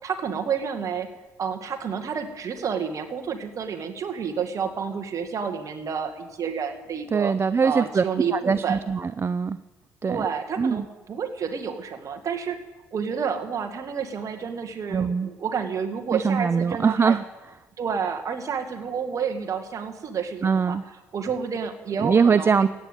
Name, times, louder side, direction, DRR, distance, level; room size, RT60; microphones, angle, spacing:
voice 1, 0.0-1.1 1.4-7.3 7.6-8.8 10.1-12.6 12.9-17.2 17.8-20.8 21.1-22.7, right 6 dB, 50° right, 6 dB, 2.0 m, -29 dB
voice 2, 7.1-8.0 8.3-9.6 10.0-10.3 10.6-10.9 14.9-15.3 16.1-17.2 20.4-20.8 22.0-22.7, right 5 dB, 35° right, 15 dB, 0.6 m, -22 dB
15.0 x 9.2 x 8.1 m, 1.2 s
hypercardioid pair, 50°, 7 cm